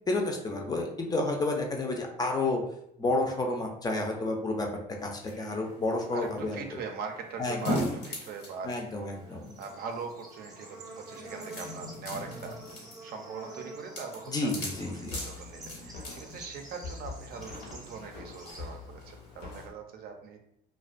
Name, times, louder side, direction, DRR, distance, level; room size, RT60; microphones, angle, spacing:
voice 1, 0.1-2.6 3.0-4.7 5.0-6.8 7.4-7.9 8.6-9.5 14.3-15.2, left 2 dB, 25° left, 2 dB, 0.4 m, -30 dB
sound 1, 5.0-19.6, left 1 dB, 85° left, 1.1 m, -41 dB
voice 2, 6.1-12.6 13.0-20.4, right 5 dB, 65° right, 4 dB, 0.4 m, -41 dB
Bird / Insect, 9.1-19.7, right 2 dB, 20° right, 0.7 m, -48 dB
sound 2, 14.7-19.7, left 4 dB, 65° left, 0.6 m, -45 dB
2.3 x 2.1 x 2.4 m, 0.73 s
cardioid pair, 110°, 17 cm